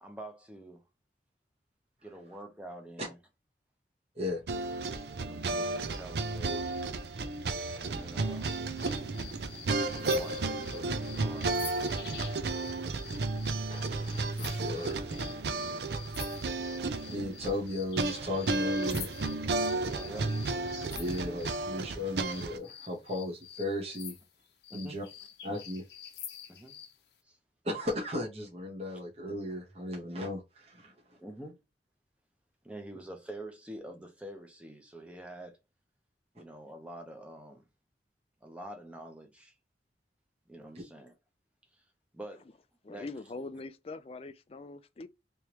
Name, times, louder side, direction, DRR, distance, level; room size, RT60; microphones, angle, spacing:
voice 1, 0.0-0.8 2.0-3.2 5.2-6.8 7.8-8.5 9.8-11.5 15.5-16.0 19.9-20.4 24.7-25.0 26.5-26.8 27.2-27.4 31.2-31.6 32.6-35.6 36.3-37.6 38.4-39.5 40.5-41.1 41.7-41.8 42.1-42.5 42.9-43.1, right 1 dB, 5° right, 0.7 m, -46 dB
sound 1, 4.5-22.6, right 3 dB, 65° right, 0.5 m, -33 dB
sound 2, 8.4-21.7 22.2-27.0, left 9 dB, 70° left, 0.7 m, -48 dB
voice 2, 13.7-15.0 17.1-19.1 20.9-24.1 24.7-25.0 25.4-25.8 27.6-30.9 40.7-40.8, left 1 dB, 35° right, 1.1 m, -36 dB
voice 3, 42.8-45.1, left 3 dB, 35° left, 0.3 m, -42 dB
3.4 x 3.0 x 2.9 m
head